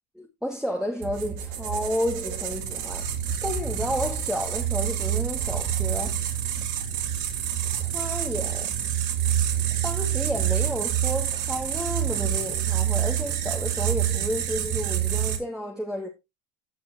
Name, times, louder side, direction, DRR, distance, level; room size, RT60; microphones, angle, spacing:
voice 1, 0.2-6.2 7.8-8.7 9.8-16.1, equal, ahead, 1.9 m, -31 dB
sound 1, 1.0-15.4, right 10 dB, 55° right, 2.7 m, -27 dB
16.5 x 5.5 x 2.8 m
hypercardioid pair, 95°, 37 cm